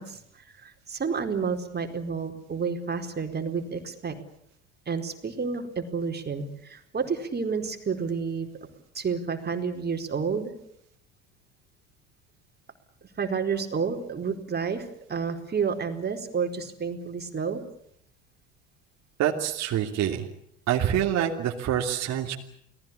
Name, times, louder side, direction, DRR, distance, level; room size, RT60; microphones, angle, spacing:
voice 1, 0.0-4.1 4.9-8.5 8.9-10.5 13.2-17.6, right 5 dB, 30° right, 5 dB, 4.5 m, -30 dB
voice 2, 19.2-20.3 20.7-22.4, right 10 dB, 50° right, 1 dB, 2.9 m, -26 dB
29.5 x 19.0 x 8.6 m, 0.71 s
hypercardioid pair, 70°, 35 cm